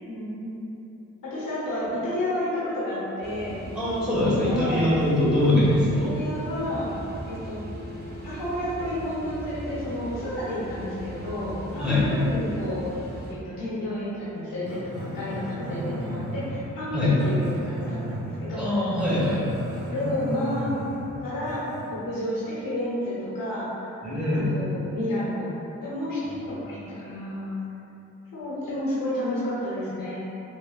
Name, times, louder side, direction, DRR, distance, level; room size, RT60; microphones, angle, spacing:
voice 1, 0.1-0.5 1.2-3.6 4.5-4.9 5.9-6.9 7.3-7.6 8.2-12.9 13.3-19.2 19.9-20.7 21.2-21.6 21.9-24.0 24.3-25.5 25.8-27.6 28.3-30.2, left 1 dB, 85° left, -9 dB, 0.9 m, -31 dB
sound 1, 3.2-13.3, right 1 dB, 30° right, 0.5 m, -38 dB
voice 2, 3.7-6.1 11.8-12.0 16.9-17.1 18.6-19.4 24.0-24.5, left 1 dB, 5° right, -11 dB, 1.3 m, -22 dB
Growling, 14.6-21.9, equal, 70° right, 0.7 m, -35 dB
3.1 x 2.3 x 2.2 m, 2.9 s
supercardioid pair, 40°, 32 cm